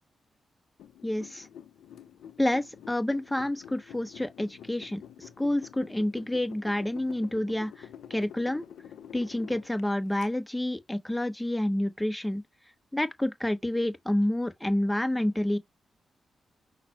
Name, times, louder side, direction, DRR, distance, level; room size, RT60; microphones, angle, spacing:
sound 1, 0.8-10.3, left 9 dB, 80° left, 0.6 m, -48 dB
voice 1, 1.0-1.5 2.4-8.7 9.1-12.4 12.9-15.6, left 1 dB, 10° left, 1.0 m, -29 dB
5.9 x 2.1 x 4.2 m
supercardioid pair, 45°, 0 cm